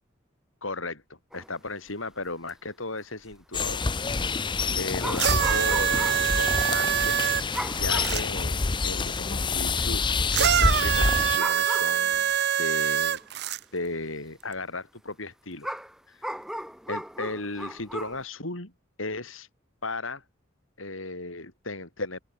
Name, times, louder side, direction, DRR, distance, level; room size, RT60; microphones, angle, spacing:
voice 1, 0.6-3.9 4.7-7.2 7.8-10.0 10.4-12.2 12.6-13.2 13.7-15.7 16.2-16.4 16.9-18.7 19.0-19.5 19.8-20.2 20.8-22.2, left 2 dB, 85° left, 6.1 m, -35 dB
sound 1, 1.3-1.6 1.9-2.0 2.3-2.5 3.3-3.6 5.0-6.4 6.7-6.8 7.5-8.3 8.7-8.8 9.2-9.7 11.0-11.1 11.4-12.4 13.1-13.3 15.6-18.2, equal, 5° right, 7.8 m, -37 dB
sound 2, 3.5-11.4, left 4 dB, 25° left, 0.6 m, -27 dB
sound 3, 5.2-8.2 10.3-13.6 14.5-14.6, right 9 dB, 60° right, 0.8 m, -24 dB
open air
head